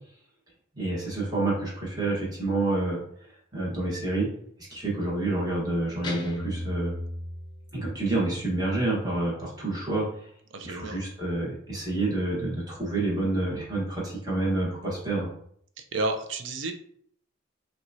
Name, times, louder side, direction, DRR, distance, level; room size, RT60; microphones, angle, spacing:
voice 1, 0.8-3.0 3.5-4.3 4.7-7.0 7.7-10.1 10.6-15.3, right 2 dB, 20° right, -5 dB, 1.2 m, -28 dB
Guitar, 6.0-8.1, equal, 20° left, 0.5 m, -34 dB
voice 2, 10.5-11.0 15.8-16.7, right 2 dB, 65° right, 6 dB, 0.5 m, -31 dB
5.8 x 2.3 x 2.6 m, 0.66 s
head